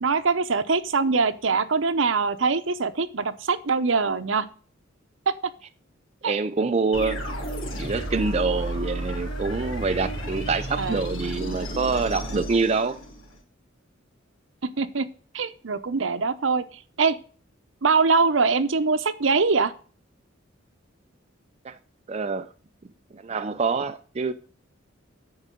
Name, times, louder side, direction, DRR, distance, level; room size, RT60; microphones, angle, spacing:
voice 1, 0.0-4.5 5.3-5.4 6.2-6.3 10.8-11.1 14.6-15.1 15.3-16.6 17.0-17.2 17.8-19.7, right 4 dB, 70° right, 0.8 m, -23 dB
voice 2, 6.3-7.2 7.8-13.0 21.6-21.8 22.1-22.5 23.1-24.3, right 4 dB, 30° right, 0.4 m, -26 dB
sound 1, 6.9-13.4, right 1 dB, 85° left, 2.8 m, -32 dB
10.0 x 4.8 x 7.6 m
head